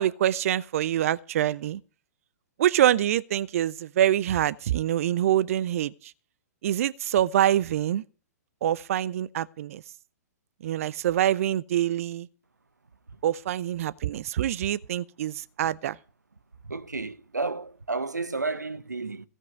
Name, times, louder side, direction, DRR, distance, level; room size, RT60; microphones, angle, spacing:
voice 1, 0.0-1.8 2.6-6.1 6.6-8.0 8.6-9.8 10.6-12.3 13.2-16.0, right 11 dB, 55° right, 0.6 m, -25 dB
voice 2, 16.6-19.3, right 3 dB, 90° right, 1.0 m, -32 dB
16.5 x 5.5 x 9.2 m
figure-of-eight pair, 115°, 9 cm